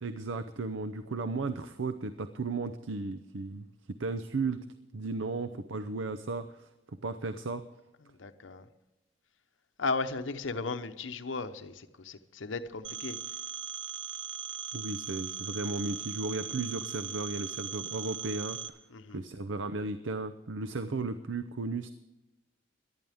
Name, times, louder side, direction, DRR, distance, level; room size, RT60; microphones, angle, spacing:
voice 1, 0.0-4.7 4.9-6.7 7.0-7.7 14.7-18.8 19.1-21.9, right 3 dB, 90° right, 11 dB, 0.7 m, -35 dB
voice 2, 8.2-8.7 9.8-13.2 18.9-19.2, left 3 dB, 80° left, 9 dB, 0.8 m, -35 dB
Telephone, 12.8-18.7, right 8 dB, 70° right, 1.1 m, -39 dB
18.0 x 12.0 x 3.5 m, 1.0 s
head